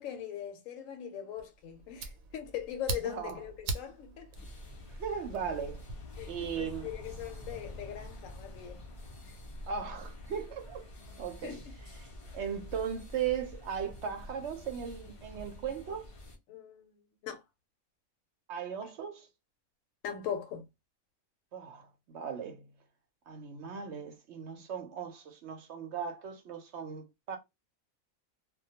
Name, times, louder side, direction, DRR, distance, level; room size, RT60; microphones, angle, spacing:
voice 1, 0.0-4.3 6.2-8.8 11.4-11.7 16.5-16.9 17.2-17.4 20.0-20.6, left 9 dB, 75° left, 0.9 m, -40 dB
Fire, 1.4-6.0, right 3 dB, 85° right, 1.0 m, -41 dB
voice 2, 3.0-3.4 5.0-5.8 6.3-6.9 9.7-10.9 11.2-11.6 12.3-16.1 18.5-19.3 21.5-22.6 23.3-27.4, right 7 dB, 65° right, 0.8 m, -37 dB
sound 1, 4.3-16.4, left 1 dB, 45° left, 0.4 m, -47 dB
2.2 x 2.2 x 2.8 m
omnidirectional pair, 1.4 m